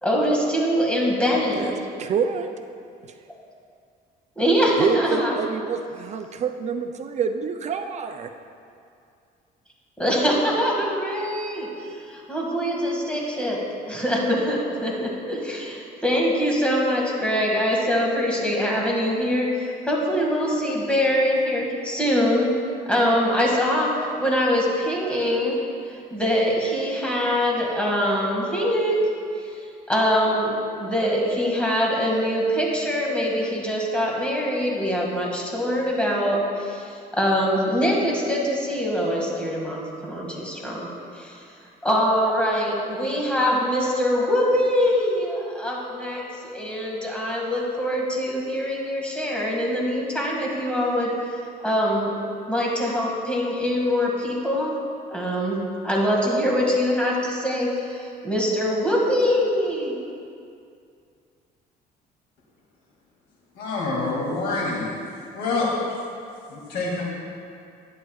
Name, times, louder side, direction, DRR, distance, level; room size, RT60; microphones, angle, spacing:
voice 1, 0.0-1.7 4.4-5.3 10.0-11.7 12.1-13.6 13.9-22.5 22.9-25.6 26.1-29.0 29.9-40.9 41.1-41.3 41.8-52.2 52.5-54.7 55.1-59.9, equal, 5° left, -3 dB, 1.9 m, -23 dB
voice 2, 1.5-2.5 3.0-3.1 4.8-8.3, right 6 dB, 40° right, 7 dB, 0.4 m, -27 dB
voice 3, 63.5-65.0 65.3-65.7 66.5-67.0, left 3 dB, 80° left, -3 dB, 2.3 m, -26 dB
11.5 x 9.9 x 2.3 m, 2.4 s
cardioid pair, 110°, 17 cm